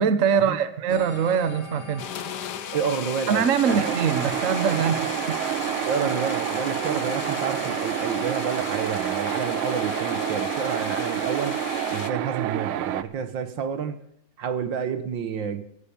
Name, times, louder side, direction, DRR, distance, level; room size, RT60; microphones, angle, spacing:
voice 1, 0.0-2.0 3.3-5.5, right 7 dB, 45° right, 1.2 m, -23 dB
sound 1, 0.9-10.3, left 2 dB, 85° left, 4.2 m, -43 dB
sound 2, 2.0-12.1, left 10 dB, 65° left, 1.2 m, -36 dB
voice 2, 2.7-3.9 5.9-11.6 11.9-14.0 14.4-15.6, right 7 dB, 65° right, 1.7 m, -29 dB
sound 3, 3.6-13.0, right 11 dB, 85° right, 1.7 m, -28 dB
16.0 x 11.5 x 5.3 m
omnidirectional pair, 2.3 m